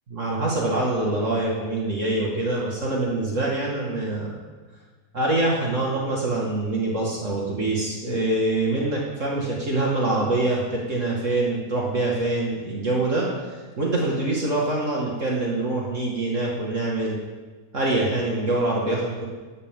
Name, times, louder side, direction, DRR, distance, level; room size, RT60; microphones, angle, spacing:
voice 1, 0.1-4.3 5.1-17.2 17.7-19.3, right 2 dB, 55° right, -3 dB, 2.5 m, -25 dB
19.0 x 12.5 x 3.9 m, 1.4 s
omnidirectional pair, 1.6 m